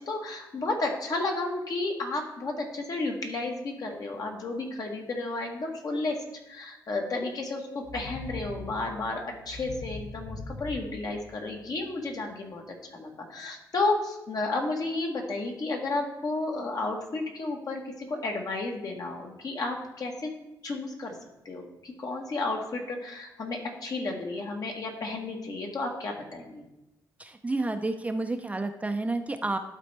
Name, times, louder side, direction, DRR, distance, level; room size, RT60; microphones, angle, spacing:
voice 1, 0.0-6.2 6.5-12.6 12.9-20.3 20.6-21.1 21.4-26.6, left 2 dB, 55° left, 1 dB, 1.5 m, -32 dB
sound 1, 7.8-11.9, left 2 dB, 70° left, 1.3 m, -41 dB
voice 2, 27.2-29.6, right 2 dB, 20° right, 7 dB, 0.5 m, -30 dB
11.5 x 4.1 x 3.4 m, 0.95 s
cardioid pair, 95°, 8 cm